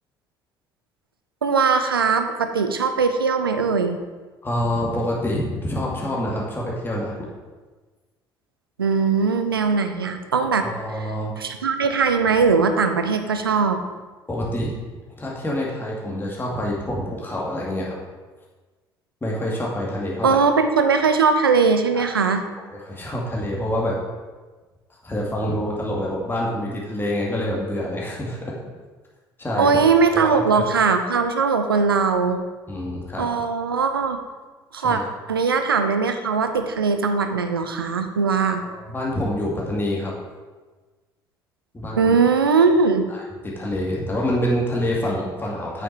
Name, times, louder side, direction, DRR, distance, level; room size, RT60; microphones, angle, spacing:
voice 1, 1.4-4.0 8.8-11.1 11.4-13.8 20.2-22.4 29.6-32.4 33.2-34.2 34.7-35.0 35.3-38.6 42.0-43.1, right 5 dB, 85° right, 7 dB, 0.6 m, -20 dB
voice 2, 4.4-7.1 10.6-11.3 14.3-14.7 15.2-18.0 19.2-20.4 21.9-22.1 22.8-24.0 25.0-28.5 29.4-29.7 30.1-30.7 32.7-33.3 34.8-35.0 38.6-40.1 41.7-42.1 43.1-45.8, left 1 dB, 20° left, -4 dB, 2.3 m, -26 dB
8.8 x 6.4 x 4.7 m, 1.3 s
figure-of-eight pair, 55°, 12 cm